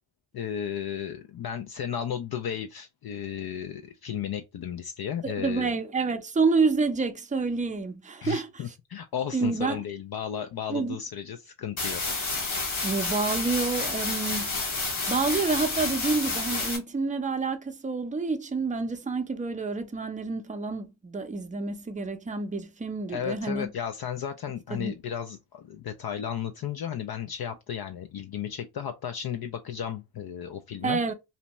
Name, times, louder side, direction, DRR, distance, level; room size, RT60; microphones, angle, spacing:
voice 1, 0.3-5.7 8.2-12.2 23.1-31.0, left 9 dB, 55° left, 0.5 m, -34 dB
voice 2, 5.2-8.5 9.3-9.8 10.7-11.0 12.8-14.5 15.1-23.7 24.7-24.9 30.8-31.1, right 4 dB, 15° right, 0.5 m, -28 dB
sound 1, 11.8-16.8, left 3 dB, 75° left, 1.4 m, -30 dB
2.7 x 2.1 x 2.9 m
cardioid pair, 40°, 47 cm